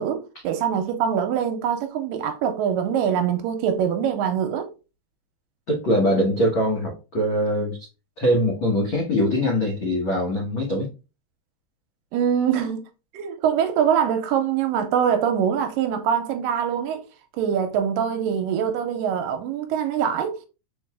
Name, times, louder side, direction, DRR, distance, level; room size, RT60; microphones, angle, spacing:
voice 1, 0.0-4.7 12.1-12.8 13.1-17.0 17.3-20.5, right 8 dB, 80° right, 2.1 m, -23 dB
voice 2, 5.7-7.8 8.2-10.9, equal, 85° left, 1.1 m, -22 dB
4.7 x 4.6 x 2.3 m
omnidirectional pair, 4.3 m